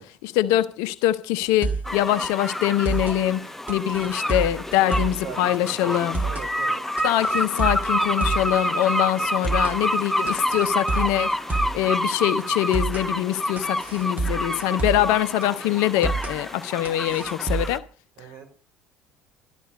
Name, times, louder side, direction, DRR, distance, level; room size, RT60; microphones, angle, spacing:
voice 1, 0.2-6.2 7.0-11.3 11.7-17.8, left 13 dB, 65° left, 0.8 m, -24 dB
sound 1, 1.4-1.9 2.2-2.3 2.6-3.2 3.7-5.2 5.5-5.6 5.9-6.5 7.0-8.5 8.8-8.9 9.2-9.8 10.3-11.8 12.1-12.2 12.5-13.1 13.6-15.1 15.4-15.5 15.8-16.4 16.8-17.8, right 3 dB, 25° right, 2.9 m, -28 dB
sound 2, 1.8-17.8, equal, 5° left, 1.0 m, -28 dB
voice 2, 4.8-6.9 14.8-15.0 18.2-18.5, right 8 dB, 60° right, 4.2 m, -40 dB
13.0 x 13.0 x 5.2 m
figure-of-eight pair, 60°, 6 cm